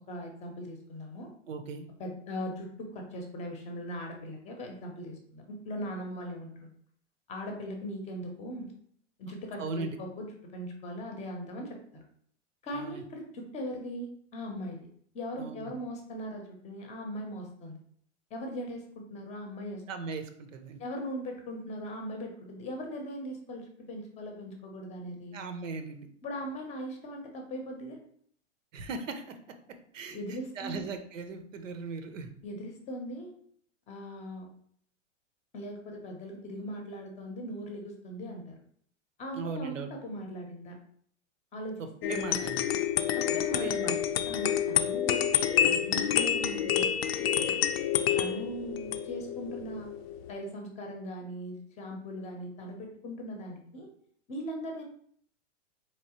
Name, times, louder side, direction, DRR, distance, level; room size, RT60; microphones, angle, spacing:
voice 1, 0.1-1.3 2.0-6.7 7.3-8.7 9.2-12.0 12.6-14.8 15.1-17.8 18.3-19.8 20.8-25.4 26.2-28.0 30.1-30.9 32.4-33.3 33.9-34.5 35.5-38.6 39.2-40.8 41.5-42.5 43.1-44.0 44.3-45.3 45.7-46.9 47.2-47.6 48.2-49.9 50.3-53.9 54.3-54.8, equal, 20° left, 2 dB, 0.7 m, -39 dB
voice 2, 1.5-1.8 9.6-10.0 12.7-13.0 15.4-15.7 19.9-20.8 25.3-26.1 28.7-29.4 29.9-32.3 39.3-39.9 41.8-42.7 43.3-44.0, right 4 dB, 85° right, 7 dB, 0.8 m, -38 dB
sound 1, 42.0-50.3, left 9 dB, 55° left, 0.5 m, -28 dB
4.0 x 3.1 x 2.9 m, 0.63 s
hypercardioid pair, 140°, 37 cm